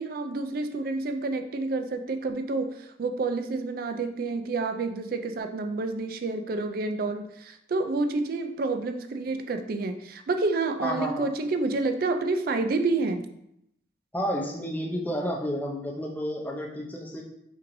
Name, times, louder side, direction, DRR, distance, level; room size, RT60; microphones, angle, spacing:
voice 1, 0.0-13.3, right 3 dB, 50° right, 7 dB, 0.4 m, -29 dB
voice 2, 10.8-11.3 14.1-17.2, equal, 10° left, -1 dB, 0.5 m, -31 dB
5.8 x 3.1 x 2.6 m, 0.78 s
head